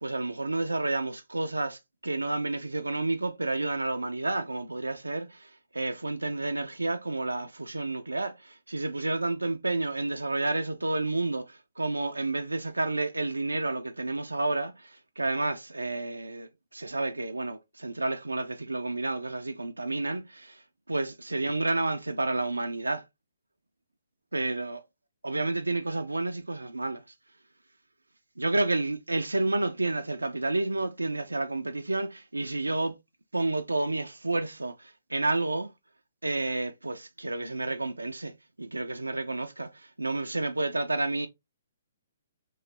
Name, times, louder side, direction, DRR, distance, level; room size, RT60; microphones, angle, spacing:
voice 1, 0.0-20.6 20.9-23.0 24.3-24.8 25.2-27.0 28.4-33.0 33.3-35.7 36.2-41.3, right 2 dB, 90° right, 0.3 m, -30 dB
3.1 x 3.0 x 2.8 m
figure-of-eight pair, 130°, 0 cm